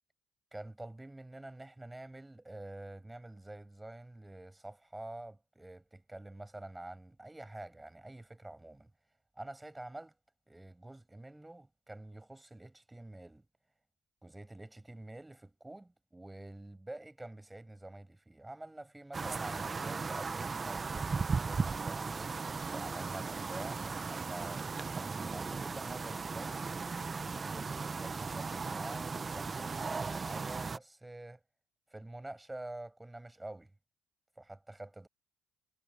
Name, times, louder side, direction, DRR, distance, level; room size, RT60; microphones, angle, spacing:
voice 1, 0.5-8.9 9.3-10.1 10.5-13.5 14.2-22.3 22.7-26.5 27.3-31.4 31.9-33.7 34.4-35.1, right 2 dB, 10° right, 6.8 m, -47 dB
sound 1, 19.1-30.8, right 4 dB, 30° right, 1.1 m, -37 dB
supercardioid pair, 70°, 0 cm